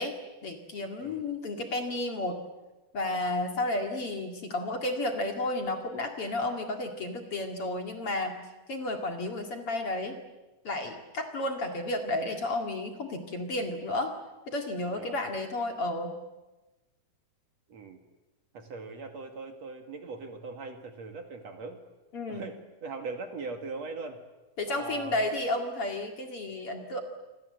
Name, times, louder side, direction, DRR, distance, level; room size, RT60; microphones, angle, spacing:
voice 1, 0.0-2.4 2.9-8.3 8.7-10.2 10.6-14.1 14.5-16.1 22.1-22.5 24.6-27.0, left 2 dB, 45° left, 4 dB, 2.9 m, -32 dB
voice 2, 17.7-18.0 18.5-21.8 22.3-24.2 24.7-25.2, right 4 dB, 55° right, 5 dB, 2.9 m, -40 dB
27.5 x 26.0 x 7.9 m, 1.1 s
omnidirectional pair, 4.0 m